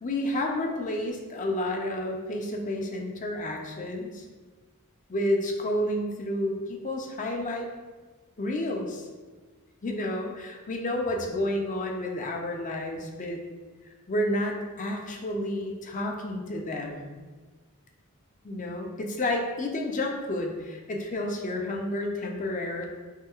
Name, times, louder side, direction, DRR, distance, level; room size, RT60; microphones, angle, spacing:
voice 1, 0.0-4.2 5.1-7.7 8.4-9.1 9.8-13.4 14.1-17.1 18.4-22.9, left 1 dB, 35° left, 1 dB, 0.6 m, -30 dB
5.7 x 3.3 x 2.4 m, 1.4 s
head